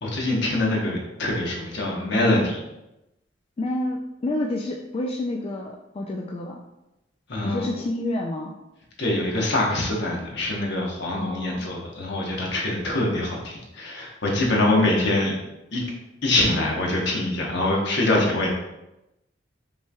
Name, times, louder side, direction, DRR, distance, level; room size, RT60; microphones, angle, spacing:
voice 1, 0.0-2.6 7.3-7.6 9.0-15.3 15.7-15.8 16.2-18.5, left 1 dB, 65° left, -2 dB, 1.0 m, -24 dB
voice 2, 3.6-6.6 7.4-8.5 11.1-11.7 14.7-15.0, left 2 dB, 30° left, 0 dB, 0.3 m, -29 dB
5.4 x 3.2 x 2.3 m, 0.92 s
head